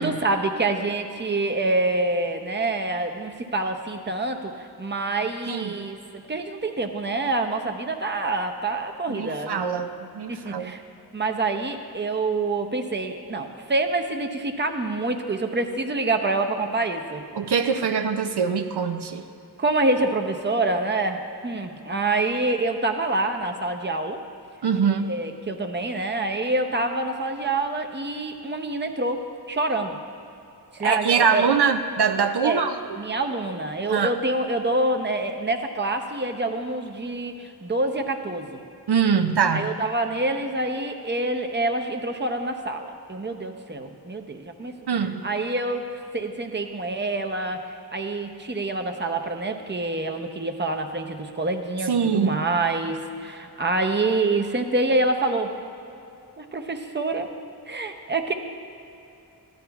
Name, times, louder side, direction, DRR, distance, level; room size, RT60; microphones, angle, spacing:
voice 1, 0.0-9.8 10.3-10.8 11.1-17.2 19.6-24.2 25.1-29.2 29.5-30.0 30.8-31.5 32.4-32.6 33.0-38.6 39.5-44.7 45.2-45.8 46.1-47.6 47.9-55.5 56.4-57.3 57.7-58.3, right 2 dB, 25° right, 5 dB, 0.7 m, -26 dB
voice 2, 9.1-10.7 17.3-19.2 24.6-25.1 30.8-33.0 33.9-34.1 38.9-39.7 44.9-45.2 51.9-52.4, right 6 dB, 80° right, 7 dB, 0.5 m, -23 dB
14.5 x 11.5 x 2.3 m, 2.7 s
wide cardioid pair, 65°, 40 cm